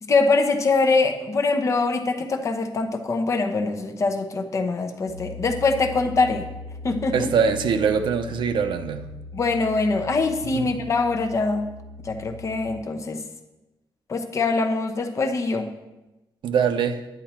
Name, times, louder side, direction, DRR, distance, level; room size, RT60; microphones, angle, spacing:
voice 1, 0.0-6.5 6.8-7.3 9.3-11.7 12.0-13.2 14.1-15.7, left 3 dB, 35° left, 6 dB, 0.9 m, -23 dB
sound 1, 5.1-12.8, left 3 dB, ahead, 2.8 m, -40 dB
voice 2, 7.1-9.1 10.5-10.7 16.4-17.0, right 6 dB, 70° right, 9 dB, 0.8 m, -22 dB
10.5 x 9.7 x 4.4 m, 1.0 s
wide cardioid pair, 175°, 9 cm